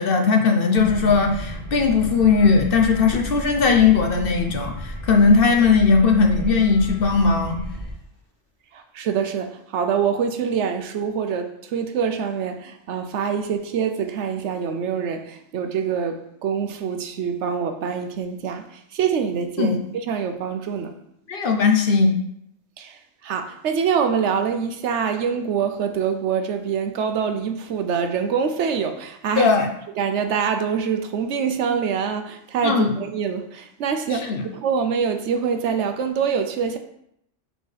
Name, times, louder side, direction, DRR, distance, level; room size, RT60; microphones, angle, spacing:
voice 1, 0.0-7.6 19.6-19.8 21.3-22.2 29.4-29.7 32.6-32.9 34.1-34.4, left 5 dB, 55° left, 3 dB, 0.9 m, -18 dB
sound 1, 0.8-7.9, equal, 20° left, 2.2 m, -33 dB
voice 2, 8.7-18.6 18.9-20.9 22.8-23.0 23.2-29.5 30.0-36.8, right 6 dB, 75° right, 8 dB, 0.9 m, -25 dB
6.8 x 4.4 x 3.3 m, 0.75 s
omnidirectional pair, 1.2 m